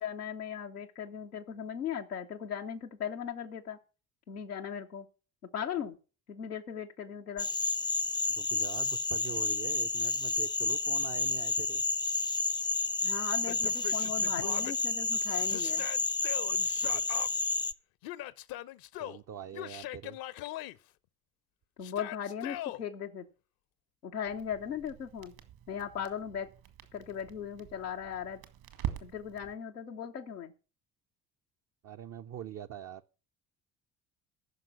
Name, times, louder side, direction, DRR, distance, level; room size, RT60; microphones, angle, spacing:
voice 1, 0.0-3.8 4.3-5.1 5.5-6.0 6.3-7.5 13.0-15.8 21.8-23.3 24.0-25.3 25.7-26.5 26.9-28.4 29.0-30.5, left 8 dB, 85° left, 0.7 m, -38 dB
sound 1, 7.4-17.7, left 3 dB, 10° left, 0.5 m, -30 dB
voice 2, 8.3-11.8 16.8-17.0 19.0-20.2 31.8-33.0, right 10 dB, 35° right, 0.6 m, -43 dB
Yell, 13.4-14.7 15.5-17.3 18.0-19.2 19.5-20.8 21.8-22.8, left 15 dB, 55° left, 0.7 m, -41 dB
Crackle, 24.3-29.5, right 11 dB, 65° right, 1.9 m, -44 dB
15.0 x 5.9 x 5.9 m
figure-of-eight pair, 45°, 44 cm